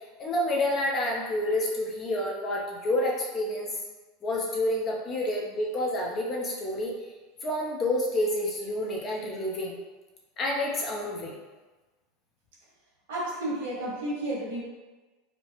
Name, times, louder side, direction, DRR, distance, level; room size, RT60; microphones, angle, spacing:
voice 1, 0.2-3.8 4.2-6.9 7.4-9.7 10.4-11.3, left 1 dB, 35° left, -2 dB, 0.8 m, -29 dB
voice 2, 13.1-14.6, right 1 dB, 85° right, -5 dB, 1.4 m, -31 dB
4.3 x 2.1 x 3.0 m, 1.2 s
supercardioid pair, 125°, 0 cm